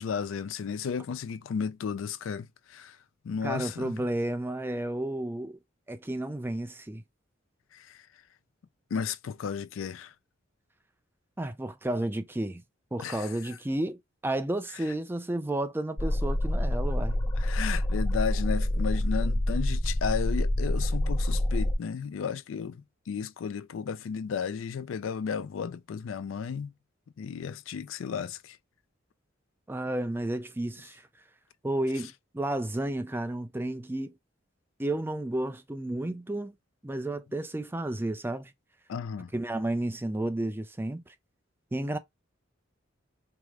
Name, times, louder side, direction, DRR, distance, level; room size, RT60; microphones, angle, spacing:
voice 1, 0.0-3.0 3.2-4.0 7.7-8.0 8.9-10.1 13.0-13.5 17.4-26.7 27.2-28.6 38.9-39.3, left 6 dB, 80° left, 0.4 m, -34 dB
voice 2, 3.4-5.6 5.9-7.0 11.4-12.6 12.9-17.2 29.7-31.0 31.6-34.1 34.8-36.5 36.8-38.5 39.3-41.1 41.7-42.0, right 1 dB, 10° right, 0.4 m, -32 dB
sound 1, 16.0-21.8, left 1 dB, 20° left, 0.7 m, -27 dB
4.8 x 2.0 x 3.5 m
head